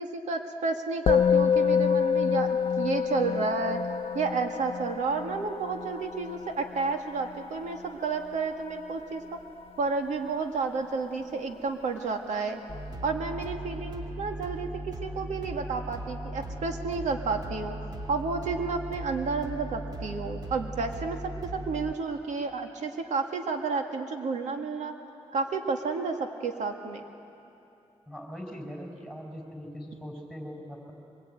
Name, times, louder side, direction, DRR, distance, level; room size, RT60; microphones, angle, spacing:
voice 1, 0.0-3.8 4.1-9.4 9.8-12.6 13.0-17.7 18.1-21.2 21.5-24.9 25.3-27.0, right 4 dB, 85° right, 4 dB, 1.9 m, -31 dB
Musical instrument, 1.1-10.6, left 7 dB, 50° left, 0.6 m, -28 dB
sound 1, 12.7-21.9, right 1 dB, 35° right, 2.1 m, -38 dB
voice 2, 28.1-30.9, equal, 5° right, 2 dB, 5.2 m, -41 dB
24.0 x 22.0 x 9.0 m, 2.8 s
cardioid pair, 90°, 12 cm